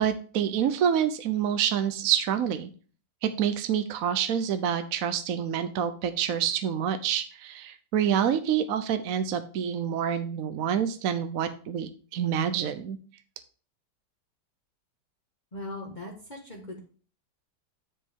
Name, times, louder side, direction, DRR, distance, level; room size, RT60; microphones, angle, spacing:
voice 1, 0.0-2.7 3.2-13.0, right 9 dB, 65° right, 9 dB, 1.0 m, -27 dB
voice 2, 15.5-16.8, left 1 dB, 25° left, -1 dB, 1.5 m, -39 dB
9.7 x 5.3 x 3.6 m, 0.40 s
omnidirectional pair, 1.8 m